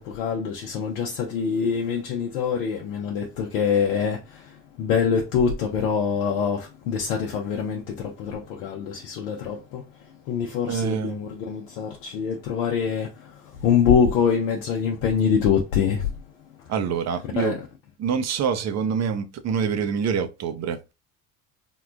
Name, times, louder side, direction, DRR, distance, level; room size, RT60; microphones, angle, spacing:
voice 1, 0.0-4.2 4.8-9.8 10.3-13.1 13.6-16.0 17.4-17.6, left 7 dB, 80° left, 0.7 m, -24 dB
voice 2, 10.7-11.2 16.7-17.6 18.0-20.9, right 6 dB, 45° right, 0.6 m, -26 dB
3.6 x 2.3 x 2.4 m
hypercardioid pair, 65°, 39 cm